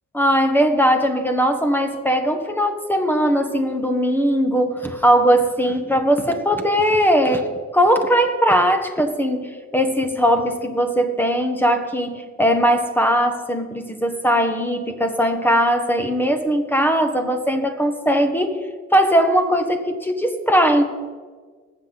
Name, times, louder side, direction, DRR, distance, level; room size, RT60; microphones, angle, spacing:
voice 1, 0.1-7.5 7.7-18.7 18.9-20.8, equal, 5° left, 7 dB, 1.5 m, -19 dB
20.5 x 7.9 x 4.2 m, 1.5 s
cardioid pair, 90°, 30 cm